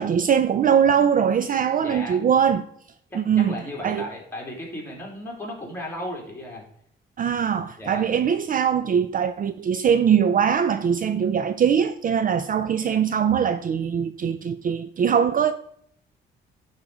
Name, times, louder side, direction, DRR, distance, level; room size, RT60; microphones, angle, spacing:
voice 1, 0.0-2.6 3.1-3.6 3.8-4.0 7.2-15.5, right 8 dB, 45° right, 0.5 m, -21 dB
voice 2, 1.8-2.2 3.1-6.6 7.5-8.1, left 1 dB, 10° left, 3.1 m, -35 dB
10.5 x 4.1 x 4.8 m
cardioid pair, 90°, 20 cm